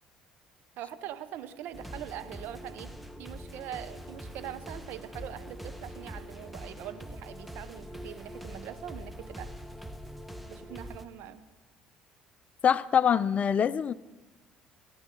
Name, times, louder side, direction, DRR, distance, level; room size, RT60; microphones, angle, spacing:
voice 1, 0.8-2.9 3.2-9.5 10.5-11.4, right 11 dB, 70° right, 12 dB, 1.0 m, -42 dB
sound 1, 1.7-11.1, equal, ahead, 1.2 m, -43 dB
voice 2, 12.6-13.9, left 8 dB, 40° left, 14 dB, 0.5 m, -24 dB
28.5 x 10.5 x 3.9 m, 1.2 s
hypercardioid pair, 65°, 4 cm